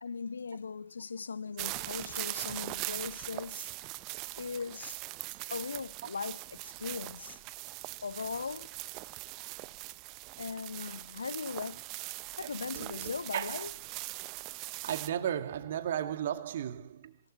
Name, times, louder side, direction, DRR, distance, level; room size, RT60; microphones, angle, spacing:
voice 1, 0.0-3.7 4.4-5.0 5.5-7.4 8.0-8.7 10.4-11.8 12.4-13.7, left 5 dB, 75° left, 0.8 m, -39 dB
sound 1, 1.6-15.1, right 21 dB, 40° right, 0.7 m, -41 dB
voice 2, 12.3-13.7 14.4-14.5 14.8-17.2, right 10 dB, 60° right, 1.9 m, -36 dB
25.5 x 18.5 x 3.1 m
figure-of-eight pair, 100°, 0 cm